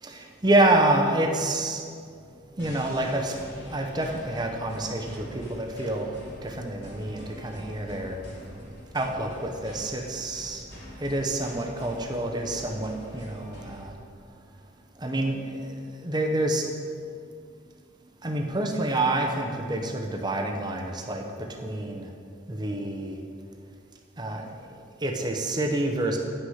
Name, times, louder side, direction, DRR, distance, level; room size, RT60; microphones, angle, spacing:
voice 1, 0.0-1.8 2.6-3.4 3.7-6.1 6.4-8.2 8.9-10.6 11.0-13.9 15.0-15.5 16.0-16.6 18.2-22.1 22.5-23.2 24.2-24.4 25.0-26.2, right 1 dB, 20° right, 2 dB, 0.9 m, -27 dB
sound 1, 2.6-13.9, equal, 60° left, 2.7 m, -45 dB
9.7 x 6.1 x 5.7 m, 2.2 s
head